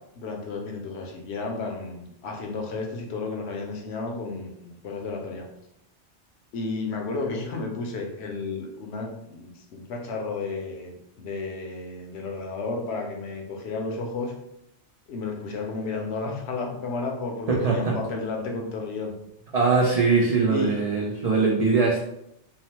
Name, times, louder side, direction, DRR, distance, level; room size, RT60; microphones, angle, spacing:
voice 1, 0.1-5.5 6.5-14.3 15.1-19.1 20.5-20.8, left 3 dB, 70° left, 2 dB, 0.8 m, -32 dB
voice 2, 17.5-17.9 19.5-22.0, right 4 dB, 80° right, -3 dB, 0.3 m, -21 dB
2.8 x 2.0 x 2.9 m, 0.80 s
omnidirectional pair, 1.2 m